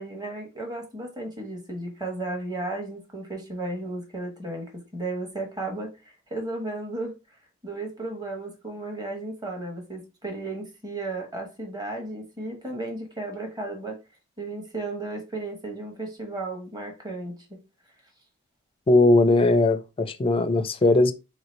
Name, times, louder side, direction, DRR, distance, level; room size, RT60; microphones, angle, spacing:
voice 1, 0.0-7.1 7.6-14.0 14.4-17.6, right 2 dB, 20° right, 1.1 m, -34 dB
voice 2, 18.9-21.1, left 2 dB, 25° left, 0.4 m, -19 dB
3.2 x 2.8 x 4.3 m
head